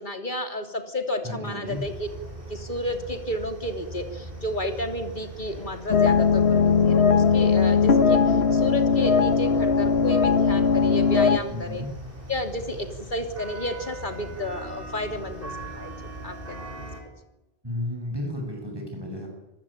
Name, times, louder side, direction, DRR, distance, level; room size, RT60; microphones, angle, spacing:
voice 1, 0.0-2.1 2.5-11.8 12.3-15.9 16.2-16.9, left 1 dB, 50° left, 6 dB, 3.0 m, -31 dB
voice 2, 1.2-1.8 11.5-11.9 17.6-19.3, left 1 dB, 25° right, 0 dB, 6.8 m, -33 dB
sound 1, 1.6-17.0, right 1 dB, 60° right, 5.9 m, -40 dB
sound 2, 5.9-11.4, left 5 dB, 85° left, 1.6 m, -19 dB
26.5 x 18.5 x 8.9 m, 1.0 s
omnidirectional pair, 1.0 m